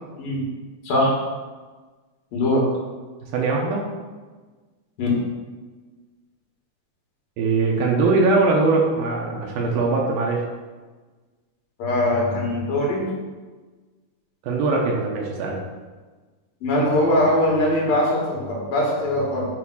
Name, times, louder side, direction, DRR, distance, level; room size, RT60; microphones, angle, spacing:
voice 1, 2.3-2.6 5.0-5.1 11.8-13.0 16.6-19.4, left 1 dB, 65° left, -4 dB, 3.3 m, -21 dB
voice 2, 3.3-3.8 7.4-10.4 14.4-15.6, right 3 dB, 75° right, -1 dB, 2.5 m, -21 dB
9.4 x 3.4 x 6.2 m, 1.4 s
omnidirectional pair, 4.6 m